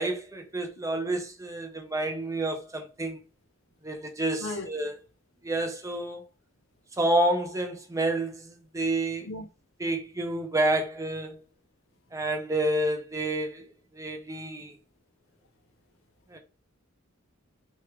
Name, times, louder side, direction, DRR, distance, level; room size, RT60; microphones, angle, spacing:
voice 1, 0.0-3.2 3.8-5.0 5.4-6.2 7.0-9.3 9.8-11.4 12.1-13.6 13.9-14.7 16.3-16.4, right 1 dB, 15° right, 0.6 m, -29 dB
voice 2, 4.4-4.7 9.2-9.5, left 2 dB, 75° left, 0.6 m, -35 dB
3.0 x 2.3 x 2.9 m
head